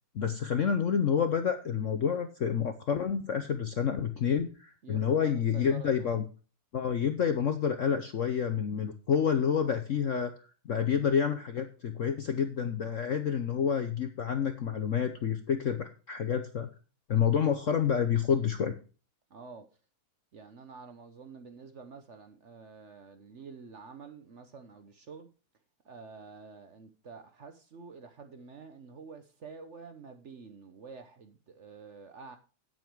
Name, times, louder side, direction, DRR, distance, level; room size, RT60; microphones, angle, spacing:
voice 1, 0.1-6.2 6.7-10.3 10.6-16.7 17.1-18.7, left 7 dB, 60° left, 0.8 m, -28 dB
voice 2, 4.8-6.2 19.3-19.6 20.3-25.3 25.8-32.4, right 5 dB, 50° right, 0.9 m, -48 dB
9.0 x 8.1 x 4.6 m
omnidirectional pair, 2.2 m